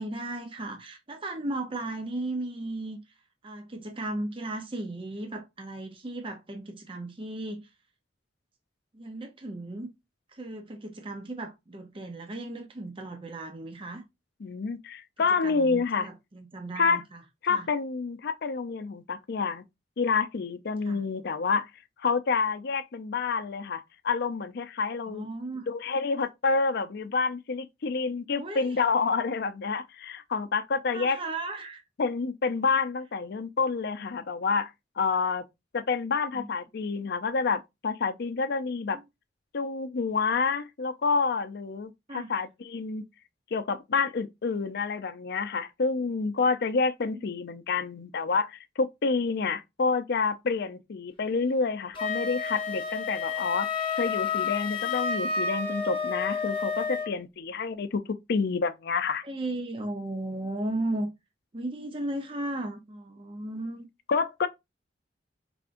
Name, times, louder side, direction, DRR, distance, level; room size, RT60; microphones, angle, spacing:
voice 1, 0.0-3.0 3.4-7.7 8.9-9.9 10.3-14.0 15.3-17.2 17.5-17.7 20.8-21.0 25.1-25.7 28.3-28.8 30.9-31.8 36.3-36.5 38.9-39.0 42.1-42.3 59.2-61.1 61.5-63.9, right 2 dB, 30° right, 0.6 m, -35 dB
voice 2, 14.4-16.1 16.8-17.0 17.4-19.6 20.0-21.7 22.0-25.3 25.7-31.2 32.0-34.7 35.0-35.4 35.7-39.0 39.5-43.0 43.5-53.7 54.0-58.0 58.3-59.2 64.1-64.5, left 4 dB, 60° left, 0.5 m, -28 dB
Wind instrument woodwind instrument, 51.9-57.1, left 5 dB, 30° left, 1.1 m, -30 dB
4.9 x 3.4 x 2.5 m
head